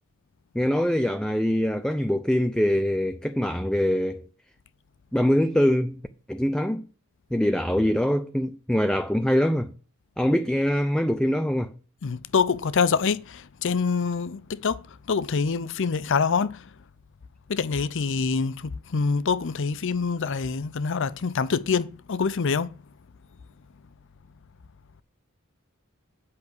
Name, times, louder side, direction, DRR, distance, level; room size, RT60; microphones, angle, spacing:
voice 1, 0.5-4.2 5.1-6.0 6.3-6.8 7.3-9.7 10.2-11.7, equal, 5° left, 0.5 m, -23 dB
voice 2, 12.0-14.8 15.1-16.6 17.5-22.7, left 5 dB, 60° left, 0.5 m, -25 dB
8.6 x 5.7 x 6.6 m
head